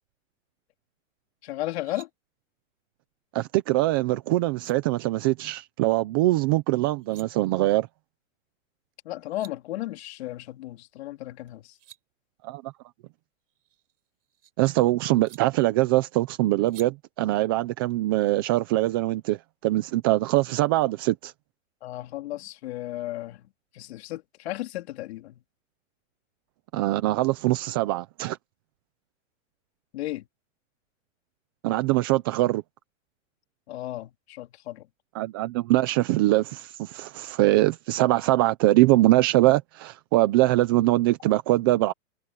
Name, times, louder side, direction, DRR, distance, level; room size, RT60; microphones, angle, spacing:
voice 1, 1.4-2.1 9.0-11.7 21.8-23.5 23.7-25.4 29.9-30.2 33.7-34.9, left 15 dB, 50° left, 3.4 m, -34 dB
sound 1, 1.6-2.1 4.1-4.2 4.5-4.7 6.8-7.3 8.9-9.0 9.2-9.5 11.5-12.0 13.5-14.5 15.3-15.4 16.7-16.9, right 10 dB, 65° right, 5.9 m, -51 dB
voice 2, 3.3-7.9 12.4-12.7 14.6-21.3 26.7-28.4 31.6-32.6 35.1-41.9, right 17 dB, 20° right, 0.5 m, -23 dB
hypercardioid pair, 165°, 40 cm